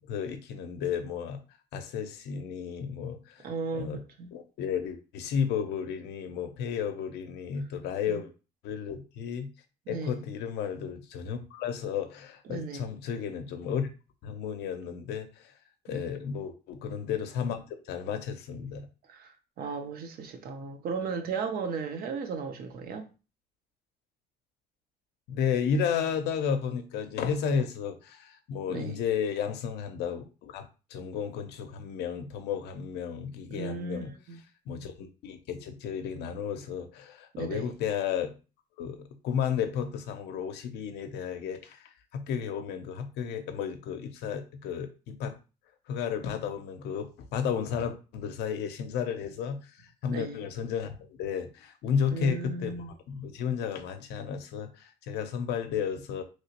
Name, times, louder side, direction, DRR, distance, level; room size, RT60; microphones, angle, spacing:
voice 1, 0.1-1.4 1.7-3.5 3.7-4.0 4.3-8.3 8.6-9.5 9.9-13.9 14.2-15.5 15.9-18.9 25.3-34.1 34.7-38.3 38.8-45.3 45.9-49.6 50.0-56.2, left 7 dB, 80° left, 0.6 m, -33 dB
voice 2, 3.4-4.3 8.1-8.2 9.9-10.2 12.5-12.9 15.9-16.1 19.1-23.1 28.7-29.0 33.5-34.4 37.3-37.7 50.1-50.4 52.1-52.9, right 5 dB, 60° right, 0.7 m, -36 dB
3.1 x 2.9 x 2.8 m
cardioid pair, 110°, 17 cm